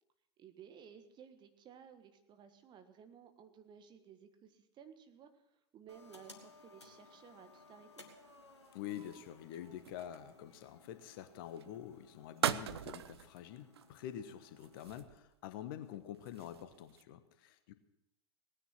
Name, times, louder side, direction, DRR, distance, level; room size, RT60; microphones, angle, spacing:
voice 1, 0.4-8.0, right 8 dB, 30° right, 8 dB, 1.5 m, -57 dB
sound 1, 5.9-15.1, left 3 dB, 85° left, 1.7 m, -61 dB
sound 2, 8.1-10.5 11.5-11.8 12.4-13.4 13.7-14.1 14.6-15.4 15.8-17.0, right 10 dB, 65° right, 0.6 m, -41 dB
voice 2, 8.7-17.7, left 11 dB, 55° left, 10 dB, 1.2 m, -47 dB
18.0 x 9.8 x 5.8 m, 0.86 s
figure-of-eight pair, 85°, 14 cm